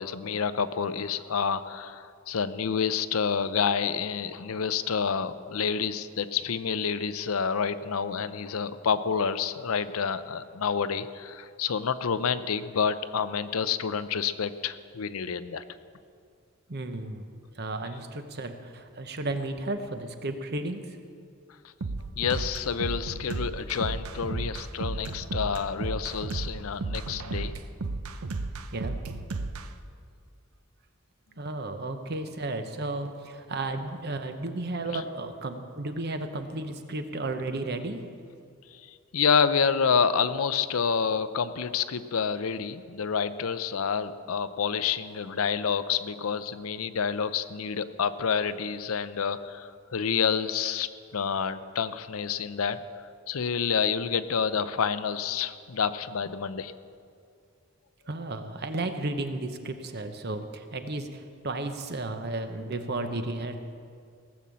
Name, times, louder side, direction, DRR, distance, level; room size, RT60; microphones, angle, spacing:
voice 1, 0.0-15.6 22.2-27.6 34.9-35.0 38.8-52.8 53.3-56.7, left 6 dB, 75° left, 13 dB, 0.6 m, -28 dB
voice 2, 16.7-21.0 28.7-29.0 31.4-38.0 58.1-63.5, right 2 dB, 50° right, 7 dB, 0.9 m, -33 dB
sound 1, 21.8-29.7, right 3 dB, 85° right, 0.7 m, -33 dB
17.5 x 7.1 x 7.4 m, 2.3 s
head